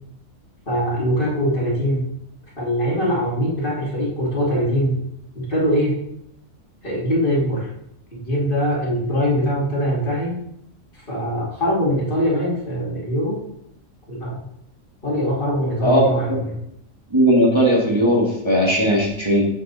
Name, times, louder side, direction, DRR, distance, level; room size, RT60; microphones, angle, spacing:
voice 1, 0.7-2.1 2.6-5.0 5.3-6.0 6.8-7.7 8.1-10.4 10.9-13.4 14.1-14.5 15.0-16.5, equal, 40° left, -4 dB, 2.4 m, -22 dB
voice 2, 17.1-19.5, equal, 20° right, -3 dB, 1.5 m, -17 dB
7.8 x 7.2 x 4.0 m, 0.76 s
omnidirectional pair, 1.4 m